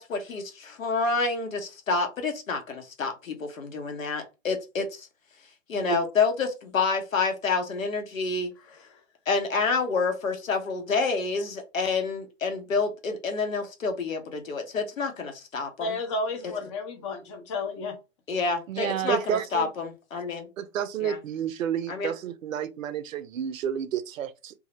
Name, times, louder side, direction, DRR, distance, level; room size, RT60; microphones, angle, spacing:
voice 1, 0.0-5.1 5.7-8.5 9.3-16.0 18.3-20.5 21.0-21.2 21.9-22.1, left 4 dB, 85° left, 0.9 m, -28 dB
voice 2, 8.7-9.0 15.8-18.0, left 3 dB, 25° left, 0.5 m, -32 dB
voice 3, 18.7-19.7 20.6-24.5, right 9 dB, 80° right, 0.5 m, -30 dB
2.2 x 2.0 x 2.9 m
hypercardioid pair, 130°, 39 cm